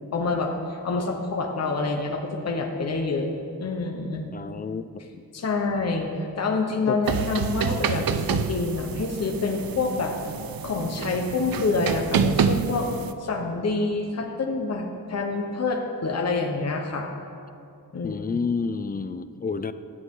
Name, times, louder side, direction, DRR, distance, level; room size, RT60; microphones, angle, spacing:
voice 1, 0.1-3.3 3.6-4.2 5.3-10.1 10.6-12.9 13.2-17.1 17.9-18.4, left 3 dB, 45° left, 1 dB, 1.1 m, -27 dB
voice 2, 4.3-4.9 6.9-7.0 18.0-19.7, left 5 dB, 25° left, 12 dB, 0.4 m, -29 dB
sound 1, 7.1-13.1, right 7 dB, 70° right, 0.6 m, -28 dB
17.5 x 11.5 x 3.8 m, 2.5 s
wide cardioid pair, 140°, 36 cm